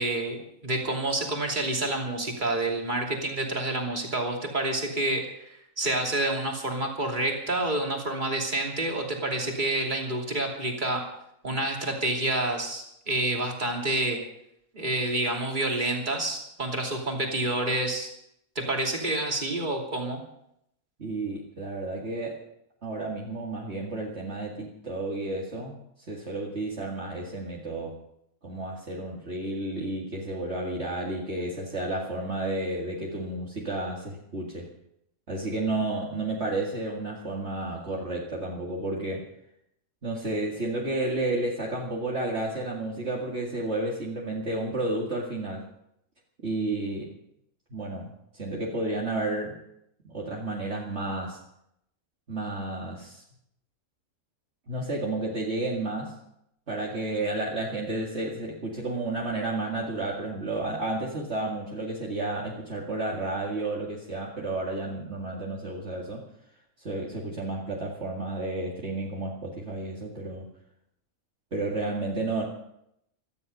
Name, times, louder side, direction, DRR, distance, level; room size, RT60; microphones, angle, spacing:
voice 1, 0.0-11.1 11.4-14.2 14.7-18.1 18.5-20.2, right 2 dB, 35° right, 1 dB, 3.0 m, -28 dB
voice 2, 21.0-22.5 22.8-25.8 26.1-28.0 28.4-34.7 35.3-39.3 40.0-45.6 46.4-47.1 47.7-49.6 50.0-51.4 52.3-53.2 54.7-56.2 56.7-66.2 66.8-70.5 71.5-72.4, right 2 dB, 50° right, -3 dB, 2.4 m, -31 dB
17.5 x 13.5 x 5.4 m, 0.77 s
omnidirectional pair, 1.5 m